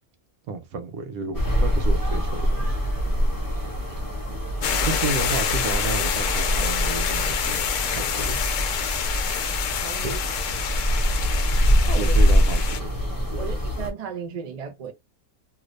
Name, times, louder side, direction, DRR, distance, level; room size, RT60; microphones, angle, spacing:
voice 1, 0.5-2.8 4.8-8.4 10.0-10.2 11.9-12.8 13.3-13.5, right 4 dB, 80° right, 1.2 m, -32 dB
sound 1, 1.3-13.9, equal, 15° left, 1.0 m, -24 dB
sound 2, 4.6-12.8, left 8 dB, 65° left, 0.9 m, -27 dB
voice 2, 9.8-10.2 10.7-10.8 11.9-12.2 13.3-14.9, right 6 dB, 45° right, 0.5 m, -35 dB
3.0 x 2.5 x 3.1 m
omnidirectional pair, 1.5 m